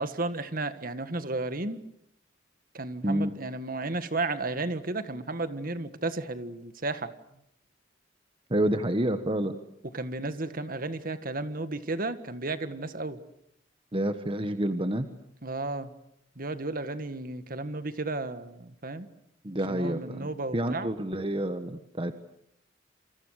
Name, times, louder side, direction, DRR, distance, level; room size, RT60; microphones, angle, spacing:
voice 1, 0.0-1.8 2.7-7.1 9.9-13.2 15.4-15.9 16.4-19.1 19.7-20.9, right 2 dB, 50° right, 11 dB, 1.7 m, -33 dB
voice 2, 8.5-9.6 13.9-15.0 19.4-22.2, right 1 dB, 30° right, 9 dB, 1.3 m, -28 dB
28.0 x 27.5 x 6.6 m, 0.74 s
head